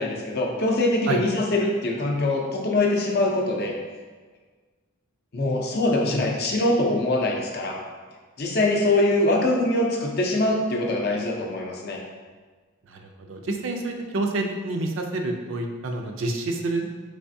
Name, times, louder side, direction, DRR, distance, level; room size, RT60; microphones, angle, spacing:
voice 1, 0.0-3.7 5.3-7.8 8.4-12.0, left 2 dB, 50° left, 0 dB, 0.5 m, -23 dB
voice 2, 12.9-16.9, right 2 dB, 65° right, 3 dB, 0.4 m, -28 dB
3.4 x 3.2 x 2.6 m, 1.4 s
head